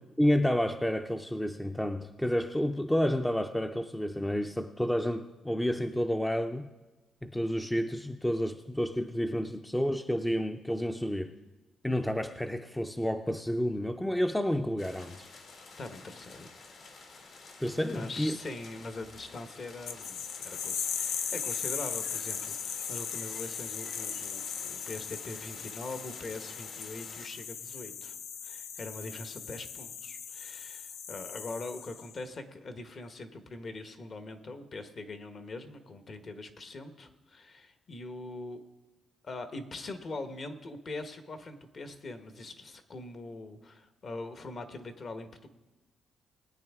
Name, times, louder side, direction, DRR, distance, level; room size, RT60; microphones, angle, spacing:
voice 1, 0.2-6.7 7.2-11.3 11.8-15.3 17.6-18.4, equal, 5° left, 7 dB, 0.5 m, -30 dB
sound 1, 14.8-27.3, left 3 dB, 65° left, 2.0 m, -51 dB
voice 2, 15.8-16.5 17.9-28.2 28.4-38.6 39.2-45.5, left 2 dB, 45° left, 8 dB, 1.2 m, -42 dB
sound 2, 19.9-32.2, left 7 dB, 80° left, 0.7 m, -38 dB
20.0 x 8.9 x 3.6 m, 1.1 s
cardioid pair, 90°, 0 cm